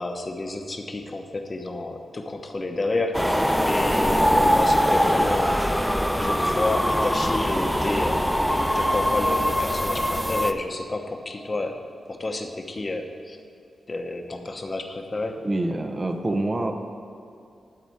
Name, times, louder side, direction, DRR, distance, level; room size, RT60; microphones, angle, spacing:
voice 1, 0.0-5.6 6.2-11.8 12.1-13.4 13.9-15.5, left 2 dB, 40° left, 4 dB, 1.0 m, -30 dB
sound 1, 3.1-10.5, equal, ahead, 0.5 m, -22 dB
voice 2, 15.4-16.7, right 2 dB, 35° right, 6 dB, 0.8 m, -26 dB
12.0 x 4.2 x 7.8 m, 2.5 s
cardioid pair, 70°, 0 cm